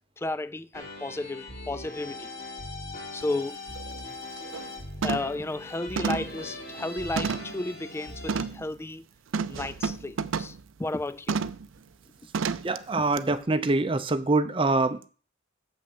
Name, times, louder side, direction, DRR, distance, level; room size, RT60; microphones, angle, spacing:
voice 1, 0.2-2.3 3.1-3.6 5.0-9.0 9.5-11.4, left 2 dB, 15° left, 0.3 m, -33 dB
sound 1, 0.7-8.5, left 2 dB, 50° left, 3.3 m, -40 dB
sound 2, 3.2-3.3 3.7-4.0 4.4-4.7 5.0-5.4 6.0-7.6 8.3-8.6 9.3-10.6 11.3-11.7 12.3-12.8 13.2-13.3, right 5 dB, 85° right, 0.5 m, -31 dB
voice 2, 12.6-15.1, right 3 dB, 25° right, 0.7 m, -25 dB
7.4 x 5.8 x 7.0 m
head